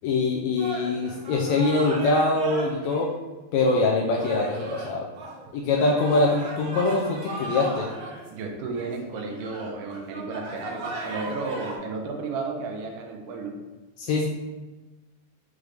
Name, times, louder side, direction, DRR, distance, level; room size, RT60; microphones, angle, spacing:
voice 1, 0.0-3.1 3.5-5.1 5.5-7.9 14.0-14.3, left 3 dB, 80° left, -1 dB, 1.7 m, -23 dB
sound 1, 0.6-3.0 3.6-3.7 4.2-11.8, right 1 dB, 70° right, 2.1 m, -36 dB
voice 2, 8.3-13.6, right 4 dB, 90° right, 2 dB, 2.2 m, -33 dB
6.1 x 2.5 x 3.3 m, 1.2 s
omnidirectional pair, 3.6 m